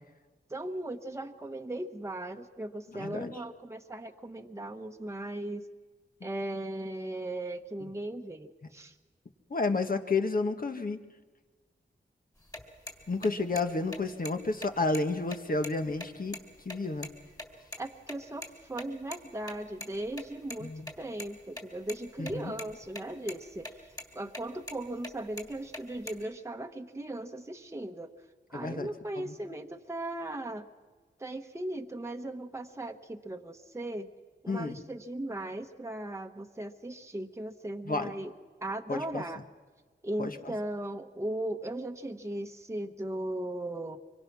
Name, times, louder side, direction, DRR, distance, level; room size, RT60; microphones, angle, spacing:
voice 1, 0.5-5.6 6.2-9.0 17.8-28.2 28.5-30.7 31.2-34.1 34.4-38.3 38.6-39.4 40.0-44.0, right 1 dB, 15° right, 4 dB, 1.1 m, -38 dB
voice 2, 2.9-3.3 7.8-7.9 9.5-11.0 13.1-16.3 16.6-17.1 20.6-20.9 22.2-22.5 28.5-28.9 29.2-29.3 34.5-34.8 37.9-38.1 38.9-39.2 40.2-40.3, left 3 dB, 45° left, 6 dB, 1.5 m, -31 dB
sound 1, 12.4-17.5 17.7-17.8 18.1-18.2 18.4-18.5 18.8-18.9 19.1-19.2 19.5-20.6 20.8-21.3 21.6-22.3 22.6-23.0 23.3-23.7 24.0-24.1 24.3-24.8 25.0-26.2, left 1 dB, 20° left, 3.3 m, -41 dB
24.5 x 23.5 x 6.1 m, 1.4 s
wide cardioid pair, 70°, 20 cm